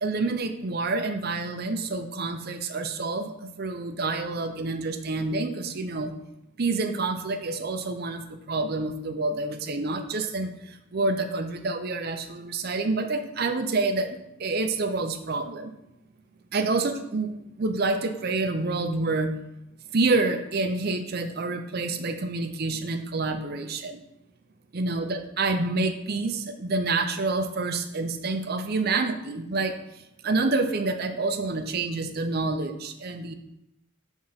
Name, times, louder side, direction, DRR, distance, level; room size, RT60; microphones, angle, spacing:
voice 1, 0.0-6.1 6.6-10.5 10.9-15.7 16.5-17.3 17.6-19.4 19.9-24.0 24.7-29.7 30.2-33.3, right 3 dB, 50° right, 7 dB, 0.6 m, -28 dB
6.4 x 3.6 x 5.6 m, 0.87 s
head